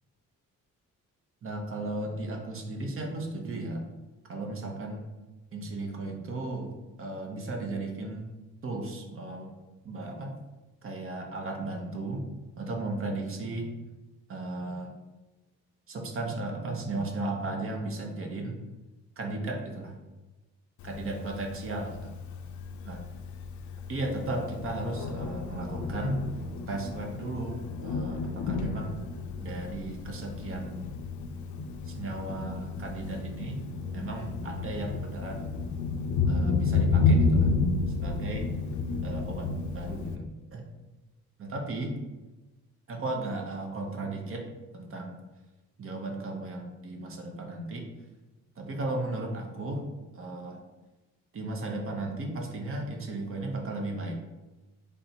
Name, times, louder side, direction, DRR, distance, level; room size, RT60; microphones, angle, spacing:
voice 1, 1.4-3.8 4.3-5.1 5.5-8.3 8.6-9.5 9.8-10.3 10.8-12.3 12.6-13.7 14.3-14.9 15.9-18.6 19.2-20.0 20.8-22.1 22.8-23.0 23.9-26.2 26.7-29.0 29.4-30.9 31.8-33.6 33.9-35.4 36.3-37.5 37.9-38.5 39.0-40.2 40.5-40.7 41.4-42.0 42.9-45.2 45.8-47.9 48.6-49.9 50.1-50.6 51.3-54.1, right 2 dB, 45° right, 2 dB, 0.8 m, -35 dB
Thunder, 20.8-40.2, left 4 dB, 75° left, 0.5 m, -31 dB
3.4 x 2.6 x 4.2 m, 1.1 s
cardioid pair, 90°, 30 cm